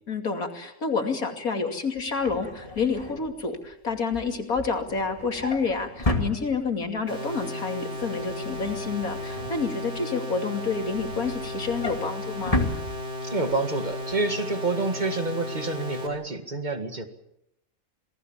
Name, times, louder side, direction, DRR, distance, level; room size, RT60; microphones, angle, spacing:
voice 1, 0.1-12.6, left 4 dB, 90° left, 4 dB, 3.1 m, -29 dB
Drawer open or close, 2.0-7.0 7.4-7.7 8.0-10.2 10.6-13.6 13.9-14.1 14.4-14.5, left 2 dB, 25° left, 2.3 m, -33 dB
sound 1, 7.1-16.1, left 1 dB, 55° right, 4.3 m, -35 dB
voice 2, 13.2-17.1, right 3 dB, 30° right, 6 dB, 2.2 m, -28 dB
28.0 x 19.0 x 7.4 m, 0.80 s
omnidirectional pair, 1.5 m